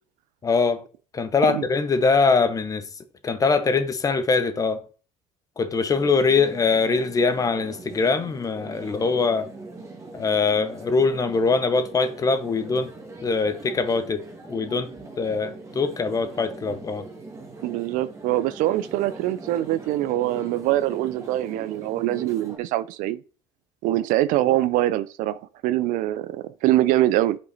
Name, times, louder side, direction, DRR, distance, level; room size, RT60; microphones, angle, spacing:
voice 1, 0.4-0.8 1.1-2.9 3.2-4.8 5.6-9.5 10.1-12.9 13.2-14.2 14.5-14.9 15.2-17.1, left 4 dB, 25° left, 0.9 m, -22 dB
sound 1, 5.9-22.6, right 3 dB, 20° right, 1.9 m, -41 dB
voice 2, 17.6-23.2 23.8-27.4, right 15 dB, 70° right, 0.6 m, -23 dB
8.2 x 5.3 x 4.0 m
cardioid pair, 135°, 14 cm